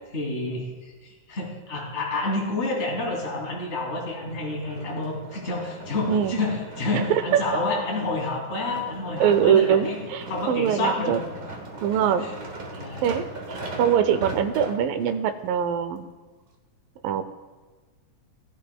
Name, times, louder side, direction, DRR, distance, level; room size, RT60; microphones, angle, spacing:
voice 1, 0.1-10.0 10.3-11.2 11.9-12.3 12.8-13.0, left 2 dB, 20° left, -2 dB, 2.4 m, -29 dB
sound 1, 4.2-15.2 15.8-15.9, right 2 dB, 45° right, 1.1 m, -39 dB
voice 2, 6.1-6.4 7.3-7.4 9.2-11.2 11.8-12.2 13.0-16.1 17.0-17.2, right 8 dB, 85° right, 9 dB, 2.4 m, -23 dB
19.0 x 11.5 x 2.2 m, 1.3 s
omnidirectional pair, 4.0 m